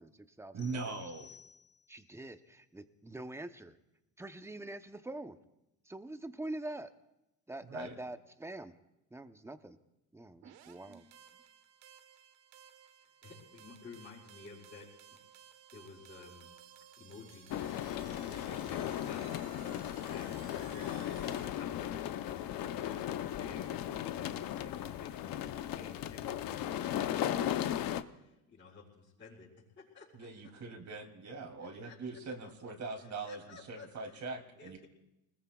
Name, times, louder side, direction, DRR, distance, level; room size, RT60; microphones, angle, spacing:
voice 1, 0.0-1.0 1.9-3.8 4.2-5.4 5.8-6.9 7.5-8.8 9.1-9.8 10.1-11.0, right 2 dB, 5° right, 9 dB, 0.8 m, -45 dB
voice 2, 0.5-1.3 7.7-8.0 10.9-11.0 30.1-34.8, right 3 dB, 40° right, 4 dB, 3.0 m, -42 dB
sound 1, 0.6-2.1, left 7 dB, 75° left, 2.9 m, -57 dB
sound 2, 10.4-21.5, right 9 dB, 75° right, 1.4 m, -57 dB
voice 3, 13.2-15.1 15.7-16.7 17.0-30.5 31.6-32.5 33.2-34.3 34.6-34.9, left 4 dB, 25° left, -10 dB, 5.5 m, -54 dB
sound 3, 17.5-28.0, left 11 dB, 50° left, 0.8 m, -36 dB
28.0 x 20.5 x 2.4 m, 0.92 s
supercardioid pair, 105°, 43 cm